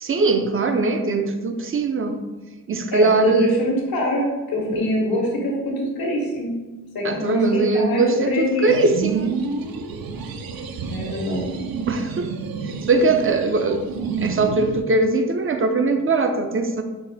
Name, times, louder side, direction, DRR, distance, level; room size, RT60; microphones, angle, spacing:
voice 1, 0.0-2.2 2.7-3.7 7.0-9.3 11.9-12.3 12.8-13.9 14.2-16.8, right 3 dB, 35° right, 7 dB, 0.5 m, -21 dB
voice 2, 2.9-6.6 6.9-8.7 10.8-11.4, left 1 dB, 85° left, -2 dB, 1.3 m, -24 dB
sound 1, 8.7-14.8, right 5 dB, 85° right, 0.5 m, -29 dB
5.7 x 2.1 x 4.1 m, 1.2 s
cardioid pair, 65°, 35 cm